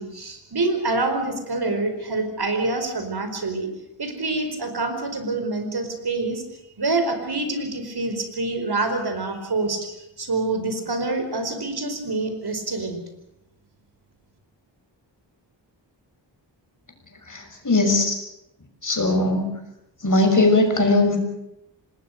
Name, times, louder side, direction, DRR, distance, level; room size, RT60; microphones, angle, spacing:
voice 1, 0.0-3.7 4.0-6.4 6.8-9.9 10.2-13.0, right 2 dB, 60° right, 7 dB, 4.9 m, -26 dB
voice 2, 17.3-18.1 18.8-19.5 20.0-21.2, left 2 dB, 45° left, 4 dB, 6.5 m, -19 dB
26.5 x 20.0 x 6.7 m, 0.86 s
wide cardioid pair, 95°, 44 cm